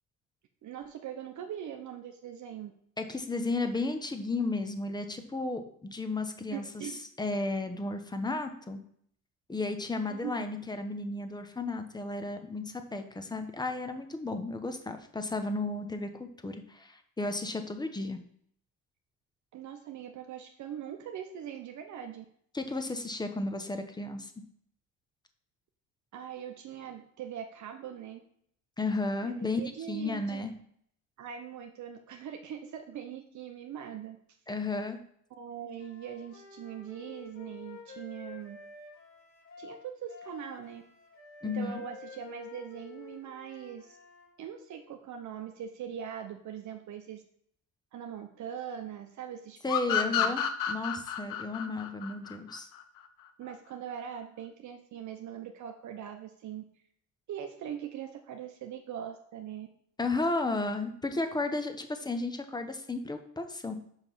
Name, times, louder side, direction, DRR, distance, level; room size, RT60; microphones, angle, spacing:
voice 1, 0.6-2.7 6.5-7.0 10.1-10.4 19.5-22.3 26.1-28.3 29.2-30.5 31.2-34.2 35.4-38.6 39.6-40.8 41.4-44.0 44.4-47.2 47.9-50.3 53.4-56.6 57.3-59.7, right 9 dB, 60° right, 5 dB, 0.8 m, -41 dB
voice 2, 3.0-6.8 7.2-8.8 9.5-18.2 22.5-24.3 28.8-29.6 29.9-30.5 34.5-35.0 41.4-41.8 49.6-50.4 50.7-52.7 60.0-63.7, left 2 dB, 15° left, 7 dB, 0.9 m, -33 dB
Wind instrument woodwind instrument, 35.8-44.3, left 4 dB, 60° left, 3.6 m, -50 dB
sound 1, 49.7-53.1, left 9 dB, 75° left, 0.9 m, -30 dB
5.7 x 5.2 x 6.0 m, 0.66 s
cardioid pair, 120°, 32 cm